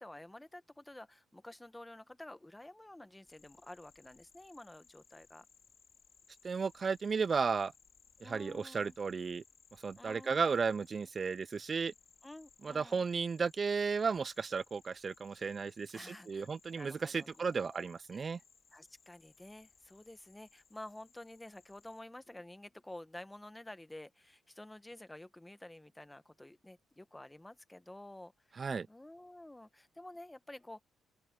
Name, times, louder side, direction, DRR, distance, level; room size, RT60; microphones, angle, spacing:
voice 1, 0.0-5.4 8.2-9.0 10.0-10.6 12.2-13.1 15.3-15.5 15.9-16.5 16.8-17.9 18.1-18.3 18.7-30.8, left 1 dB, 10° left, 1.2 m, -51 dB
sound 1, 3.3-22.0, left 6 dB, 50° left, 2.5 m, -65 dB
voice 2, 6.4-7.7 8.2-9.4 9.8-11.9 12.6-18.4 28.6-28.9, right 5 dB, 40° right, 0.4 m, -34 dB
open air
cardioid pair, 90°, 0 cm